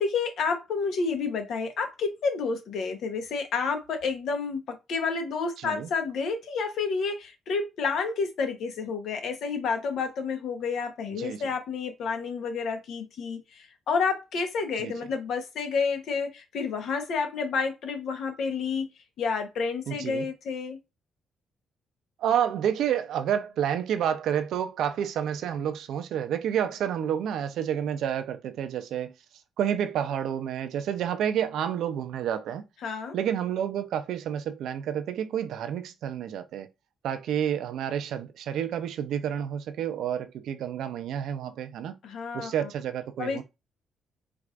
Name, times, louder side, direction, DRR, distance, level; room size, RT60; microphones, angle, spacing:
voice 1, 0.0-18.9 19.2-20.8 32.8-33.2 42.0-42.7 43.2-43.4, left 5 dB, 70° left, 1.0 m, -30 dB
voice 2, 5.6-5.9 11.2-11.4 14.8-14.9 19.9-20.3 22.2-29.1 29.6-32.6 33.1-36.7 37.0-42.0 42.3-43.4, right 9 dB, 75° right, 0.6 m, -29 dB
4.6 x 2.5 x 2.4 m
cardioid pair, 90°, 0 cm